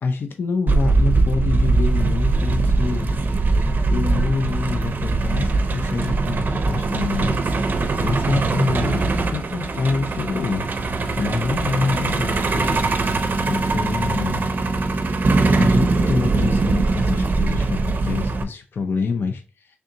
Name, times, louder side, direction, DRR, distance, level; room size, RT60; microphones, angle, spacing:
voice 1, 0.0-3.1 3.9-12.8 13.0-14.4 15.5-19.8, left 4 dB, 80° left, 6 dB, 0.4 m, -27 dB
Truck, 0.7-18.4, right 3 dB, 60° right, 0.4 m, -21 dB
3.4 x 2.7 x 3.7 m, 0.34 s
wide cardioid pair, 115°, 4 cm